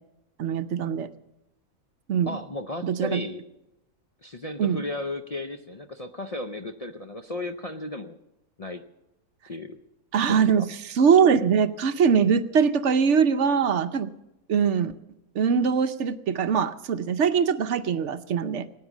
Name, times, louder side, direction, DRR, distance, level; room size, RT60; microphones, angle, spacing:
voice 1, 0.4-1.1 2.1-2.4 2.8-3.2 4.6-4.8 10.1-10.7 11.0-14.1 14.5-14.9 15.3-18.7, right 6 dB, 60° right, 10 dB, 0.9 m, -22 dB
voice 2, 2.3-3.4 4.2-8.2 8.6-8.8 9.5-9.8 10.3-10.7, left 2 dB, 60° left, 3 dB, 0.4 m, -35 dB
18.5 x 9.5 x 7.2 m, 0.93 s
omnidirectional pair, 1.6 m